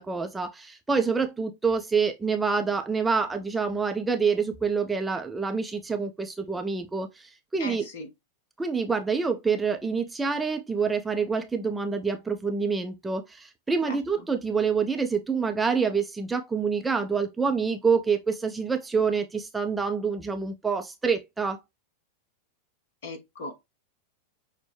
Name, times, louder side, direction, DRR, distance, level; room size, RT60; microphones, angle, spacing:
voice 1, 0.0-7.9 8.6-21.6, right 5 dB, 10° right, 0.4 m, -27 dB
voice 2, 7.6-8.1 13.8-14.0 23.0-23.6, left 2 dB, 55° left, 1.3 m, -38 dB
5.9 x 2.2 x 3.1 m
figure-of-eight pair, 90°, 0 cm